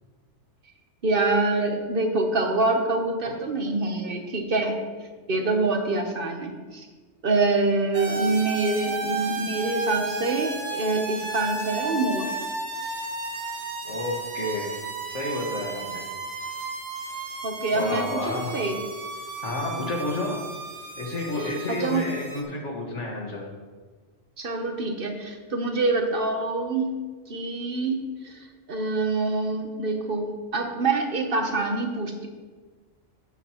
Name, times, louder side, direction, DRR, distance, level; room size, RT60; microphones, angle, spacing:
voice 1, 1.0-4.8 5.3-6.9 7.2-12.4 17.4-18.8 21.4-22.1 24.4-26.9 27.3-32.3, right 3 dB, 50° right, 4 dB, 1.2 m, -26 dB
sound 1, 7.9-22.4, right 3 dB, 85° right, 1.6 m, -33 dB
voice 2, 13.8-14.8 15.1-16.0 17.7-18.5 19.4-20.4 21.0-23.5, left 2 dB, 85° left, -1 dB, 2.0 m, -30 dB
12.0 x 8.2 x 3.0 m, 1.4 s
omnidirectional pair, 1.2 m